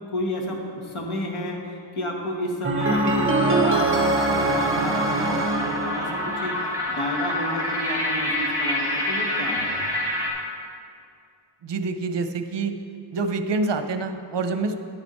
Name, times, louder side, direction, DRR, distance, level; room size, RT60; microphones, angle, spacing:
voice 1, 0.1-9.7, left 1 dB, 85° left, 0 dB, 1.6 m, -31 dB
sound 1, 2.6-6.7, right 3 dB, 25° right, 0.8 m, -24 dB
sound 2, 2.8-10.3, left 1 dB, 5° right, 2.4 m, -27 dB
voice 2, 11.6-12.7 13.1-14.8, right 3 dB, 60° right, 8 dB, 0.7 m, -26 dB
11.0 x 8.9 x 4.3 m, 2.3 s
wide cardioid pair, 145°, 48 cm